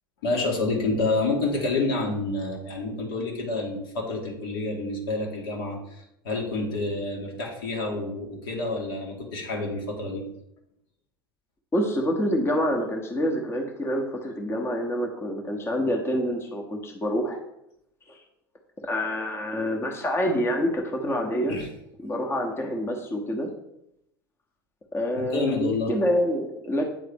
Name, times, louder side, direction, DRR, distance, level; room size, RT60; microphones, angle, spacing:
voice 1, 0.2-10.2 21.5-21.7 25.2-25.9, left 2 dB, 70° left, -1 dB, 1.6 m, -28 dB
voice 2, 11.7-17.4 18.1-18.2 18.8-21.6 22.0-23.5 24.9-26.8, equal, 20° left, 2 dB, 1.0 m, -27 dB
8.4 x 3.8 x 3.5 m, 0.81 s
figure-of-eight pair, 75°, 12 cm